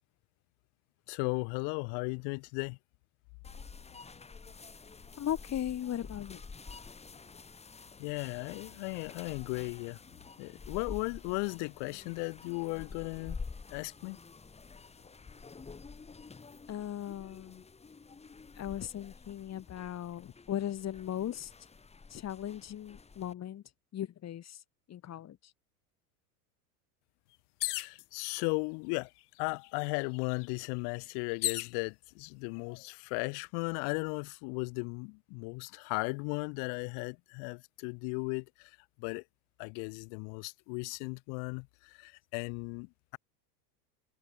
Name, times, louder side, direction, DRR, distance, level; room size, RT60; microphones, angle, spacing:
voice 1, 1.1-2.8 8.0-10.0 10.4-13.4 13.7-14.2 27.6-29.1 29.4-39.2 39.6-43.2, left 40 dB or more, 60° left, 2.6 m, -36 dB
sound 1, 3.4-23.3, left 4 dB, 15° left, 1.7 m, -49 dB
voice 2, 5.2-6.4 16.7-17.6 18.6-21.5 22.1-23.6 23.9-24.6 24.9-25.4, left 11 dB, 35° left, 2.9 m, -37 dB
sound 2, 27.6-28.0 29.0-29.1 29.4-31.8 32.5-33.0, left 20 dB, 80° left, 0.9 m, -36 dB
supercardioid pair, 105°, 46 cm